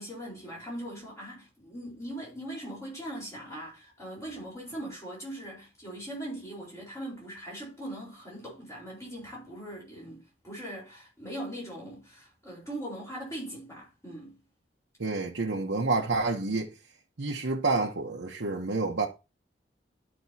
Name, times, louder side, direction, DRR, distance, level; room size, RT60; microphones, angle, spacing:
voice 1, 0.0-14.4, right 1 dB, 15° left, 4.1 m, -40 dB
voice 2, 15.0-16.7 17.2-19.1, right 3 dB, 85° right, 0.9 m, -29 dB
12.0 x 5.2 x 2.8 m
head